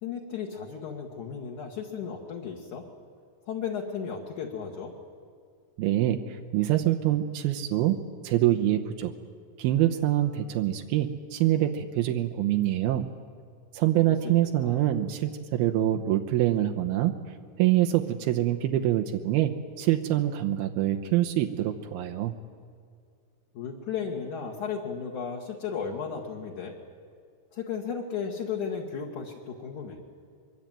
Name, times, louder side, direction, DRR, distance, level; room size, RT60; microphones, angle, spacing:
voice 1, 0.0-2.8 3.5-4.9 14.0-14.3 14.6-14.8 23.5-26.8 27.5-30.0, left 6 dB, 55° left, -1 dB, 2.5 m, -35 dB
voice 2, 5.8-8.0 8.2-9.1 9.6-13.1 13.7-17.1 17.6-22.3, right 13 dB, 80° right, 5 dB, 2.2 m, -25 dB
24.0 x 23.5 x 9.1 m, 2.2 s
omnidirectional pair, 5.7 m